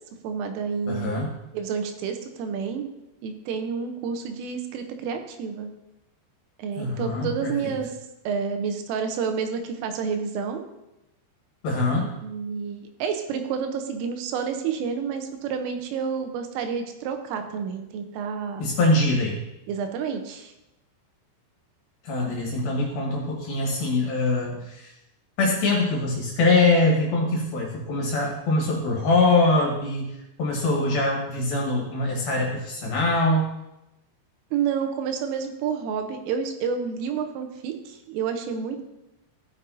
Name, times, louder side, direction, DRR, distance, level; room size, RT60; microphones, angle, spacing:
voice 1, 0.2-2.9 3.2-5.7 6.6-7.9 8.3-10.6 12.2-18.6 19.7-20.5 34.5-38.8, right 6 dB, 85° right, 6 dB, 3.4 m, -29 dB
voice 2, 0.9-1.3 6.8-7.8 11.6-12.1 18.6-19.4 22.0-24.9 25.4-33.5, left 2 dB, 60° left, -2 dB, 2.8 m, -23 dB
15.0 x 6.9 x 2.7 m, 0.91 s
omnidirectional pair, 5.7 m